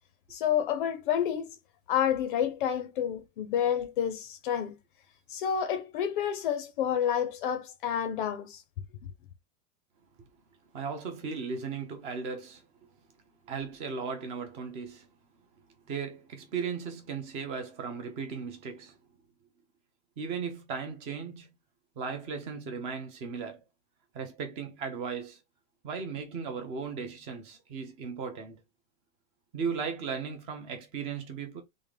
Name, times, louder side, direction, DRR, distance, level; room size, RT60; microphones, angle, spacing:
voice 1, 0.3-1.6 1.9-4.8 5.3-8.6, left 9 dB, 40° left, 0.5 m, -29 dB
voice 2, 10.7-12.6 13.4-15.1 15.9-19.0 20.2-21.5 22.0-23.6 24.1-25.4 25.8-28.6 29.5-31.6, right 5 dB, 15° right, 0.5 m, -36 dB
3.6 x 2.5 x 3.2 m
supercardioid pair, 160°, 41 cm